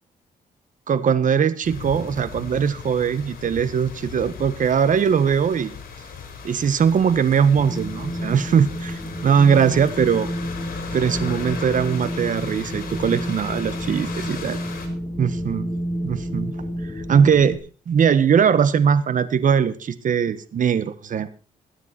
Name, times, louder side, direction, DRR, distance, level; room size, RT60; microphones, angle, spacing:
voice 1, 0.9-5.8 6.4-10.3 10.9-14.6 15.2-15.7 16.0-16.5 17.1-17.6 17.9-21.3, right 7 dB, 55° right, 14 dB, 1.5 m, -20 dB
sound 1, 1.6-14.9, left 6 dB, 70° left, 4.7 m, -37 dB
Wind, 7.6-17.6, equal, 10° left, 5.6 m, -30 dB
21.0 x 9.6 x 4.5 m, 0.37 s
cardioid pair, 85°, 15 cm